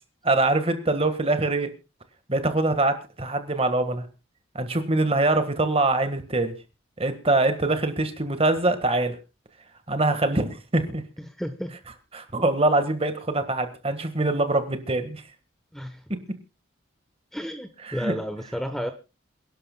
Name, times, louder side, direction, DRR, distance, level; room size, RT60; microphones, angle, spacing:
voice 1, 0.2-1.7 2.3-4.1 4.5-6.6 7.0-9.2 9.9-11.0 12.1-15.2 16.1-16.4 17.8-18.1, right 2 dB, 30° right, 9 dB, 1.6 m, -24 dB
voice 2, 11.4-11.8 15.7-16.0 17.3-18.9, equal, ahead, 7 dB, 0.9 m, -31 dB
28.0 x 11.5 x 2.3 m, 0.29 s
head